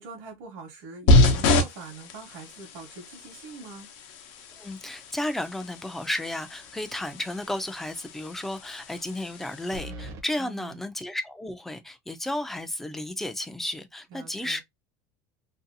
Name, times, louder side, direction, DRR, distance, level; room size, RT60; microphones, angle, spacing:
voice 1, 0.0-3.9 10.4-10.9 14.1-14.6, right 4 dB, 70° right, 1.0 m, -43 dB
sound 1, 1.1-9.8, left 2 dB, 65° left, 0.7 m, -27 dB
voice 2, 4.6-14.6, left 1 dB, 5° left, 0.3 m, -33 dB
sound 2, 6.6-7.1 7.4-7.5 9.7-10.3, right 1 dB, 40° right, 0.6 m, -40 dB
2.6 x 2.3 x 2.5 m
cardioid pair, 150°, 8 cm